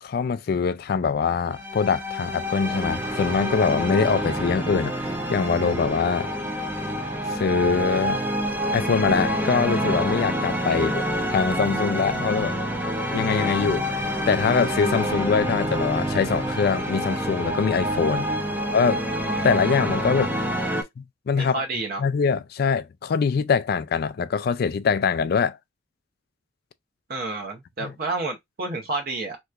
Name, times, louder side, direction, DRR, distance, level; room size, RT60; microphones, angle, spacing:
voice 1, 0.0-4.9 5.3-6.3 7.3-8.2 8.7-11.0 11.3-12.6 13.1-18.3 18.7-19.0 19.4-20.3 21.0-21.5 22.0-25.6 27.8-27.9, left 5 dB, 55° left, 0.3 m, -23 dB
sound 1, 1.5-20.8, equal, 10° right, 0.5 m, -27 dB
voice 2, 18.1-18.7 21.3-22.0 27.1-29.4, right 3 dB, 50° right, 0.7 m, -31 dB
3.3 x 2.9 x 2.4 m
head